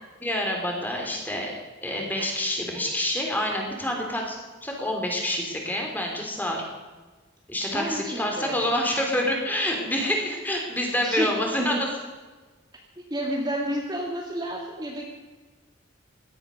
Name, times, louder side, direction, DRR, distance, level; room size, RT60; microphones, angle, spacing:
voice 1, 0.2-1.5 1.8-4.4 4.6-6.6 7.5-11.9, left 1 dB, 10° left, 1 dB, 3.3 m, -27 dB
voice 2, 7.6-8.7 11.0-11.3 13.1-15.1, right 1 dB, 20° right, -1 dB, 2.1 m, -30 dB
17.5 x 12.5 x 6.5 m, 1.3 s
head